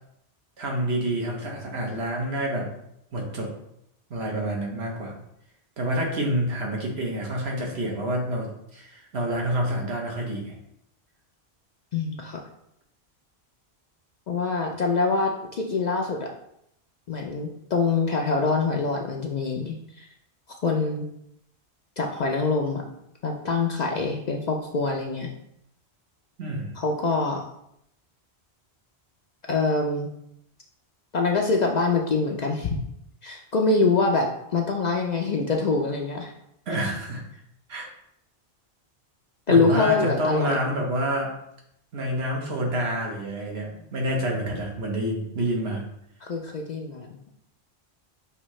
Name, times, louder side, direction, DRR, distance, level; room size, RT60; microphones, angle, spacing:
voice 1, 0.6-2.7 3.1-3.5 4.1-5.1 5.8-10.5 26.4-26.7 36.7-37.2 37.7-37.9 39.5-41.3 41.9-45.8, right 1 dB, 75° right, 0 dB, 1.2 m, -28 dB
voice 2, 11.9-12.4 14.3-16.3 17.1-20.1 20.6-21.1 22.0-22.8 23.2-25.3 26.8-27.4 29.5-30.1 31.1-32.8 33.2-36.3 39.5-40.6 46.2-47.2, left 4 dB, 55° left, 1 dB, 0.5 m, -24 dB
5.5 x 2.7 x 3.1 m, 0.77 s
omnidirectional pair, 1.1 m